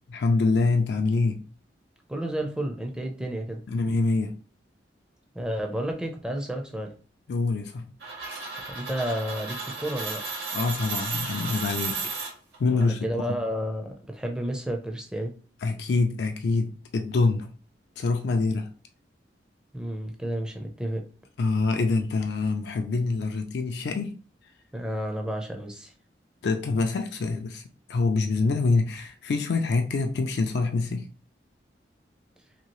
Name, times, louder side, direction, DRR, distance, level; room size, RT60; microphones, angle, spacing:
voice 1, 0.1-1.4 3.7-4.4 7.3-7.9 10.5-12.2 12.6-13.4 15.6-17.5 18.0-18.7 21.4-24.2 26.4-27.6 27.9-31.1, left 3 dB, 65° left, 0.3 m, -25 dB
voice 2, 2.1-3.6 5.3-6.9 8.7-10.2 12.7-15.3 19.7-21.0 24.7-25.9, right 1 dB, 5° right, 0.4 m, -31 dB
sound 1, 8.0-12.8, right 4 dB, 65° right, 1.0 m, -34 dB
2.8 x 2.7 x 3.0 m
head